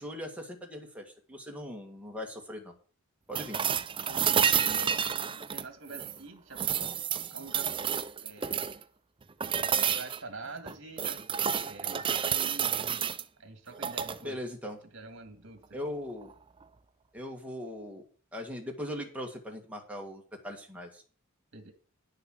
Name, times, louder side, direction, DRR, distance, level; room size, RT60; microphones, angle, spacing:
voice 1, 0.0-2.7 3.3-3.6 14.2-14.8 15.7-16.3 17.1-18.0 18.3-21.0, left 1 dB, 5° right, 1 dB, 2.0 m, -40 dB
sound 1, 3.3-6.2 6.5-8.8 9.4-10.2 10.7-13.2 13.7-14.2 16.2-16.3, right 8 dB, 25° right, 0.5 m, -30 dB
voice 2, 4.1-6.9 7.3-7.7 8.2-8.7 9.6-11.3 11.6-13.0 13.4-14.4 14.9-15.8 21.5-21.7, right 3 dB, 60° right, 6 dB, 2.1 m, -46 dB
10.5 x 6.8 x 6.5 m, 0.42 s
head